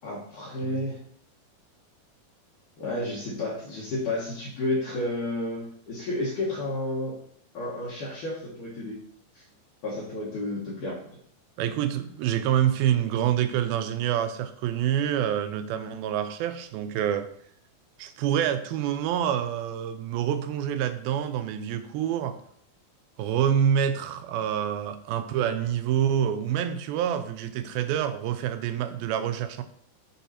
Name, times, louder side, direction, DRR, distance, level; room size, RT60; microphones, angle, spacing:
voice 1, 0.0-1.0 2.8-7.2 7.5-9.0 9.3-9.4 9.8-11.1, left 1 dB, 65° left, -7 dB, 2.6 m, -31 dB
voice 2, 11.6-17.3 18.0-22.4 23.2-29.6, right 9 dB, 85° right, 9 dB, 2.4 m, -27 dB
8.1 x 3.6 x 4.2 m, 0.65 s
omnidirectional pair, 4.3 m